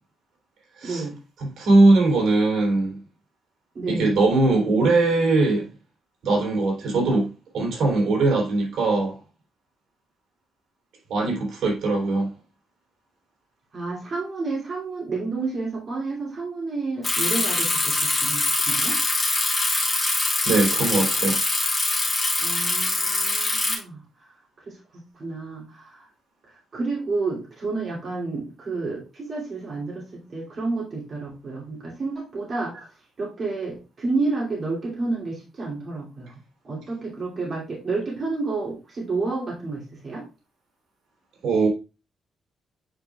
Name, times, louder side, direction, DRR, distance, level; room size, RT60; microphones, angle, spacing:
voice 1, 0.8-1.2 3.7-4.2 13.7-19.0 22.4-24.0 24.6-26.1 26.7-32.7 33.2-36.4 36.6-40.2, right 3 dB, 35° right, 2.8 m, -30 dB
voice 2, 1.4-3.0 3.9-5.7 6.2-7.3 7.5-9.2 11.1-12.3 20.4-21.4 41.4-41.7, right 2 dB, 80° right, 3.1 m, -20 dB
Bicycle, 17.0-23.7, left 2 dB, 15° left, 2.1 m, -23 dB
9.0 x 4.9 x 2.4 m
wide cardioid pair, 175°, 0 cm